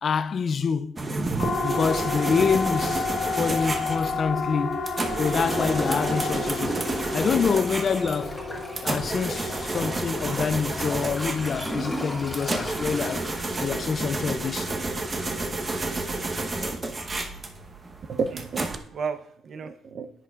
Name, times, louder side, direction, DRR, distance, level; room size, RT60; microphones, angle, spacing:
voice 1, 0.0-1.0 1.6-3.1 3.3-4.8 5.2-6.8 7.1-8.4 8.8-13.3 13.6-14.7, left 6 dB, 50° left, 0.3 m, -26 dB
sound 1, 1.0-18.8, right 2 dB, 30° right, 1.0 m, -31 dB
Siren, 1.4-15.7, left 3 dB, 65° left, 2.2 m, -33 dB
Gurgling / Toilet flush, 5.5-14.9 15.4-15.5, equal, 5° left, 2.0 m, -36 dB
voice 2, 18.1-20.1, right 5 dB, 55° right, 0.7 m, -32 dB
10.0 x 6.7 x 2.4 m
cardioid pair, 90°, 0 cm